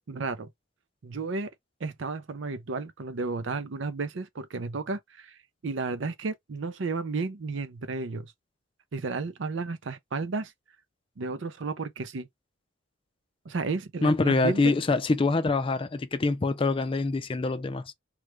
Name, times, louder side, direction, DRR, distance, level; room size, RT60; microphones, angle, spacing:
voice 1, 0.1-0.5 1.0-1.5 1.8-5.4 5.6-8.3 8.9-10.5 11.2-12.3 13.5-14.7, right 4 dB, 70° right, 0.6 m, -32 dB
voice 2, 14.0-17.9, left 3 dB, 25° left, 0.4 m, -25 dB
3.1 x 2.4 x 3.1 m
head